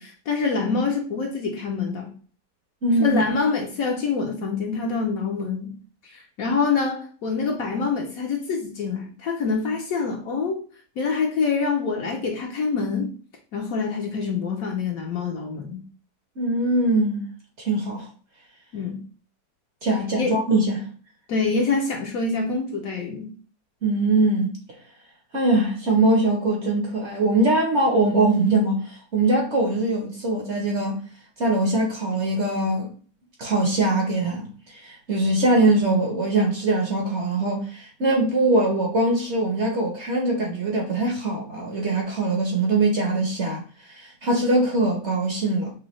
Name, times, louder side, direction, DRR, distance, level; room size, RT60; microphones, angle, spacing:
voice 1, 0.0-2.1 3.0-5.7 6.0-10.6 11.0-13.1 13.5-15.8 18.7-19.0 20.2-20.4 21.3-23.3, left 4 dB, 65° left, 1.0 m, -26 dB
voice 2, 2.8-3.2 16.4-17.3 17.6-18.1 19.8-20.8 23.8-24.6 25.3-31.0 31.4-32.9 33.4-34.5 34.7-43.6 43.9-45.8, right 2 dB, 50° right, 0.9 m, -22 dB
6.1 x 2.2 x 3.0 m
omnidirectional pair, 1.9 m